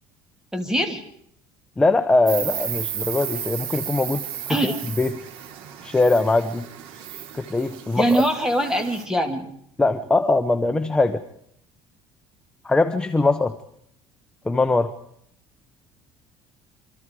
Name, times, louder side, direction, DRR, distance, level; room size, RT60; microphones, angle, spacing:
voice 1, 0.5-1.0 4.5-4.7 8.0-9.4, right 1 dB, 5° right, 5 dB, 3.1 m, -22 dB
voice 2, 1.8-5.2 5.8-6.6 7.3-8.2 9.8-11.2 12.6-13.5 14.5-14.9, left 2 dB, 10° left, 8 dB, 0.9 m, -21 dB
Insect, 2.3-9.0, right 10 dB, 70° right, 3.5 m, -34 dB
27.5 x 25.0 x 4.9 m, 0.70 s
cardioid pair, 170°, 9 cm